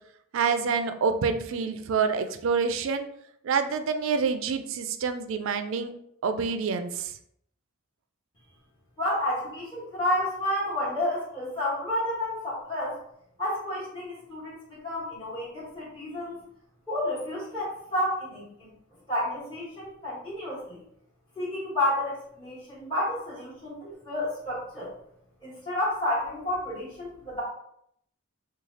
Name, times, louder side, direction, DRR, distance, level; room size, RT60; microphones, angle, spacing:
voice 1, 0.3-3.1 3.4-5.9 6.2-7.1, right 5 dB, 65° right, 8 dB, 0.4 m, -27 dB
voice 2, 9.0-12.9 13.4-16.4 16.9-18.7 19.1-20.8 21.4-24.9 25.4-27.4, left 1 dB, 25° left, -11 dB, 1.2 m, -30 dB
3.2 x 2.3 x 3.7 m, 0.71 s
head